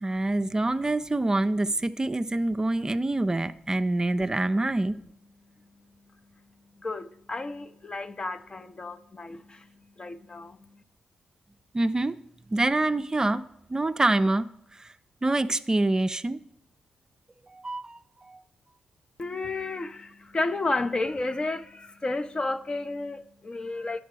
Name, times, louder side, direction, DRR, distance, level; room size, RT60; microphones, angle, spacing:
voice 1, 0.0-5.0 11.7-12.1 12.5-13.4 13.7-14.9 15.2-16.4 17.5-18.4, right 2 dB, 25° right, 0.4 m, -26 dB
voice 2, 6.7-10.8 19.2-24.0, left 2 dB, 35° left, 0.6 m, -32 dB
11.0 x 7.4 x 4.7 m
cardioid pair, 55°, 3 cm